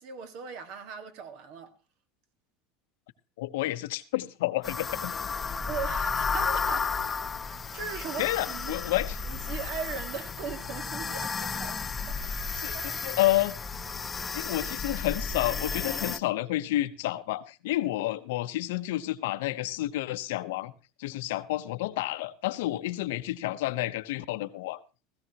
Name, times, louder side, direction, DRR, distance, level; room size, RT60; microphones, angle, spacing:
voice 1, 0.0-1.7 5.6-6.9 7.2-8.7 9.2-11.8 12.1-12.3 12.7-13.0, right 6 dB, 55° right, 1.8 m, -39 dB
voice 2, 3.4-5.1 8.2-9.2 12.6-12.7 13.0-13.6 14.3-20.7 21.0-24.8, left 16 dB, 85° left, 0.9 m, -30 dB
sound 1, 4.6-16.2, left 5 dB, 15° left, 0.6 m, -33 dB
17.0 x 15.0 x 2.9 m
supercardioid pair, 150°, 0 cm